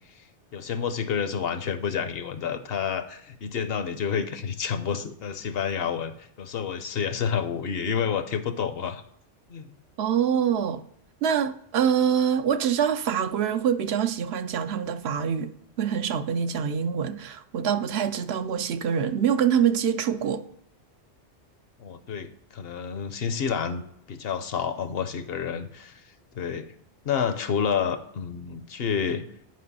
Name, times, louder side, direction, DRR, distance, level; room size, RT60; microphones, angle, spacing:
voice 1, 0.5-9.0 9.5-9.6 21.8-23.8 24.1-26.0 26.3-26.7 27.0-29.2, left 7 dB, 65° left, 0.9 m, -29 dB
voice 2, 10.0-10.8 11.2-20.4, right 8 dB, 70° right, 0.8 m, -25 dB
9.4 x 5.3 x 4.1 m
omnidirectional pair, 1.1 m